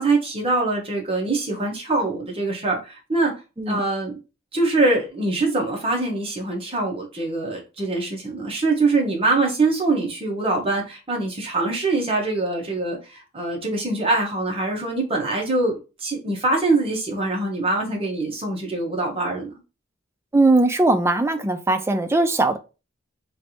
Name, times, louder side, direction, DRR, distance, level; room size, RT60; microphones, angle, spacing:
voice 1, 0.0-3.3 3.7-4.2 4.5-15.7 16.0-19.6, right 2 dB, 30° right, 1.0 m, -23 dB
voice 2, 20.3-22.6, right 2 dB, 15° right, 0.3 m, -19 dB
3.2 x 2.6 x 2.8 m
head